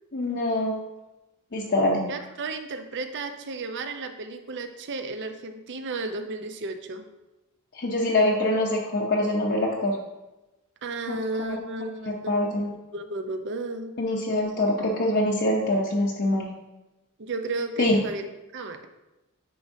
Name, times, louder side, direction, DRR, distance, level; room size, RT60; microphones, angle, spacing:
voice 1, 0.1-0.8 1.5-2.1 7.7-10.0 11.1-11.2 11.5-11.6 12.0-12.7 14.0-16.5 17.8-18.0, left 1 dB, 50° left, -3 dB, 0.7 m, -24 dB
voice 2, 2.1-7.1 10.8-12.5 12.9-13.9 17.2-18.3 18.5-18.9, right 3 dB, 55° right, 7 dB, 0.6 m, -33 dB
9.4 x 5.1 x 2.7 m, 1.0 s
head